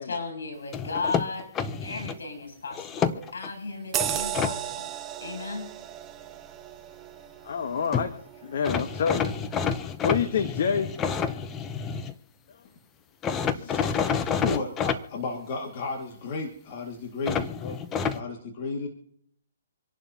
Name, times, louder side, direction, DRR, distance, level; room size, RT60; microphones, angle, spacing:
voice 1, 0.0-1.5 1.8-4.9 5.2-5.7, left 3 dB, 80° left, 4 dB, 7.8 m, -35 dB
sound 1, 0.7-2.2 2.7-3.5 4.0-4.5 7.6-7.7 7.9-8.1 8.6-12.1 13.2-15.0 17.2-18.2, left 6 dB, 15° left, 0.7 m, -29 dB
sound 2, 3.9-8.9 9.3-9.5, right 11 dB, 20° right, 0.7 m, -35 dB
voice 2, 7.4-8.1 8.4-9.3 10.0-10.9, left 6 dB, 55° left, 8 dB, 1.3 m, -27 dB
voice 3, 13.5-18.9, left 3 dB, 40° left, 2 dB, 2.2 m, -34 dB
27.0 x 11.5 x 2.9 m, 0.63 s
hypercardioid pair, 150°, 0 cm